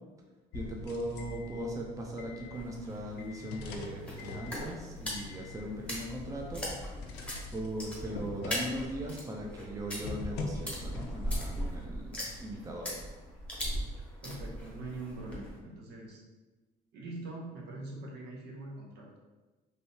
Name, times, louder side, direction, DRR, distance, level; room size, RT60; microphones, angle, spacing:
sound 1, 0.5-9.3 10.0-11.8, left 3 dB, 90° left, 0.5 m, -44 dB
voice 1, 0.5-7.1 7.5-13.0, right 1 dB, 20° right, 0 dB, 0.5 m, -39 dB
sound 2, 2.5-15.6, equal, 5° left, 0.9 m, -40 dB
voice 2, 14.2-16.2 16.9-19.2, right 2 dB, 75° right, -2 dB, 0.8 m, -43 dB
3.4 x 2.6 x 2.8 m, 1.2 s
cardioid pair, 110°, 17 cm